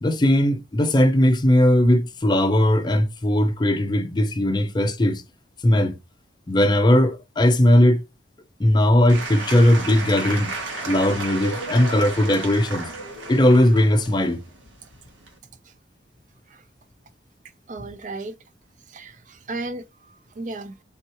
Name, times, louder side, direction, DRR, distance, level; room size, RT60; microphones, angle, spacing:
voice 1, 0.0-5.2 5.6-6.0 6.5-8.0 8.6-10.5 10.9-12.9 13.3-14.4, left 1 dB, 25° left, 0.5 m, -18 dB
Applause / Crowd, 9.1-15.4, right 3 dB, 85° right, 1.3 m, -33 dB
voice 2, 17.7-18.4 18.9-19.8 20.4-20.7, right 2 dB, 40° right, 0.4 m, -34 dB
3.5 x 3.0 x 4.2 m
head